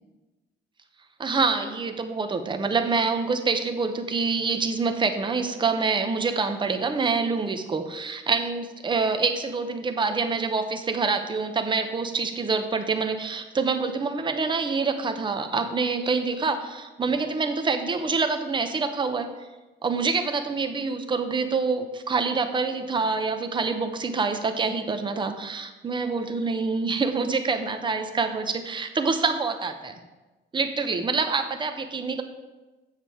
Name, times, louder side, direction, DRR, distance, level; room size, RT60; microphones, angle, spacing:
voice 1, 1.2-19.3 19.8-29.9 30.5-32.2, right 4 dB, 25° right, 7 dB, 0.7 m, -26 dB
7.4 x 7.4 x 4.8 m, 1.1 s
cardioid pair, 130°, 20 cm